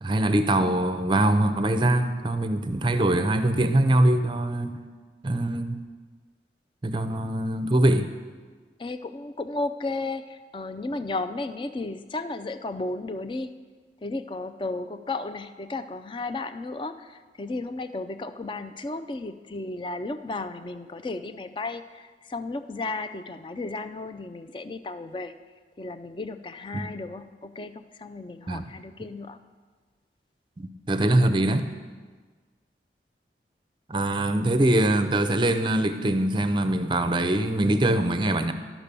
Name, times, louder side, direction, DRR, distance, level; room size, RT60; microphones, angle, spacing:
voice 1, 0.0-4.8 5.2-5.8 6.8-8.1 26.7-26.9 28.5-28.7 30.6-31.6 33.9-38.5, right 1 dB, 25° right, 9 dB, 0.5 m, -23 dB
voice 2, 8.8-13.5 14.0-25.3 25.8-29.4, left 2 dB, 30° left, 11 dB, 0.4 m, -34 dB
12.5 x 6.0 x 6.8 m, 1.5 s
head